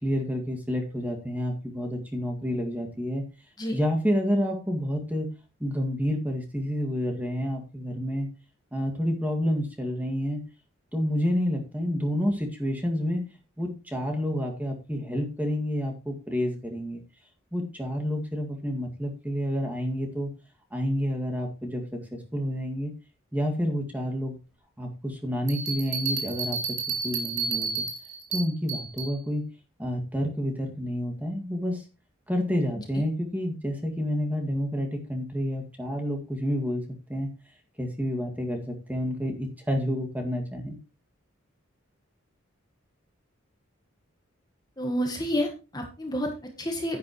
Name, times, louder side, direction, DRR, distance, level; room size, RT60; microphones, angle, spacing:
voice 1, 0.0-3.2 3.7-5.3 5.6-8.3 8.7-10.4 10.9-13.3 13.6-17.0 17.5-20.3 20.7-22.9 23.3-24.4 24.8-26.6 27.0-27.8 28.3-29.4 29.8-31.8 32.3-37.3 37.8-40.8, equal, 10° right, 2 dB, 2.0 m, -29 dB
sound 1, 25.5-29.1, right 5 dB, 70° right, 2.9 m, -31 dB
voice 2, 44.8-47.0, equal, 20° left, 3 dB, 1.5 m, -30 dB
10.0 x 9.6 x 3.1 m, 0.30 s
head